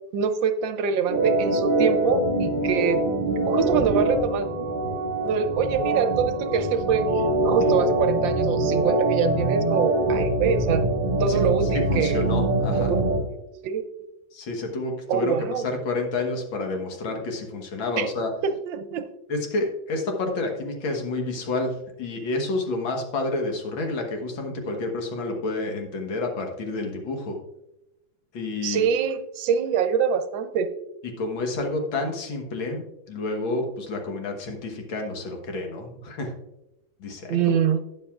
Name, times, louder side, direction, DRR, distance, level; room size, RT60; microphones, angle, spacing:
voice 1, 0.1-3.0 3.5-4.5 5.2-10.8 11.2-12.3 12.9-13.2 13.6-13.8 15.1-15.7 18.0-18.1 18.4-19.1 28.6-30.7 37.3-37.8, right 7 dB, 75° right, 10 dB, 1.3 m, -25 dB
Organ, 1.1-13.2, right 2 dB, 35° right, 1.1 m, -24 dB
voice 2, 11.7-12.9 14.3-15.4 15.6-18.3 19.3-27.4 28.3-28.8 31.2-36.3 37.0-37.4, left 2 dB, 75° left, 3 dB, 2.0 m, -29 dB
12.0 x 9.0 x 2.4 m, 0.90 s
omnidirectional pair, 2.2 m